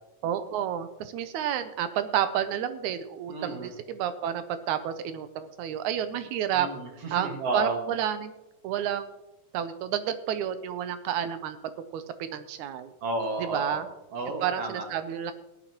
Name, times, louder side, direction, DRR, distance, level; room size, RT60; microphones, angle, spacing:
voice 1, 0.2-6.7 7.1-8.3 8.6-9.1 9.5-12.9 13.4-13.9 14.4-15.3, right 10 dB, 75° right, 11 dB, 2.0 m, -30 dB
voice 2, 3.3-3.7 6.5-7.8 13.0-13.8 14.1-14.8, right 2 dB, 50° right, 1 dB, 2.8 m, -32 dB
17.5 x 11.5 x 3.1 m, 0.94 s
omnidirectional pair, 3.7 m